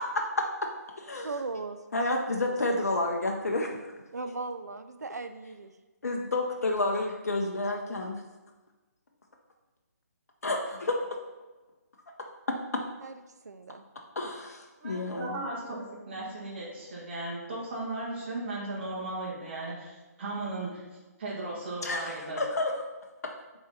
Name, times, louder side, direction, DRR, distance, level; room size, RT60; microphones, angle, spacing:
voice 1, 0.1-0.7 1.0-1.3 1.9-3.9 6.0-8.2 10.4-11.0 12.2-12.3 14.2-15.4 21.8-22.1 22.4-22.8, left 2 dB, 65° left, 2 dB, 0.7 m, -30 dB
voice 2, 1.2-1.8 2.2-2.5 4.1-5.7 13.0-13.1 13.4-13.9, right 3 dB, 70° right, 9 dB, 0.4 m, -38 dB
voice 3, 14.8-22.4, right 2 dB, 40° right, -5 dB, 1.9 m, -36 dB
7.1 x 4.0 x 4.2 m, 1.2 s
figure-of-eight pair, 140°, 9 cm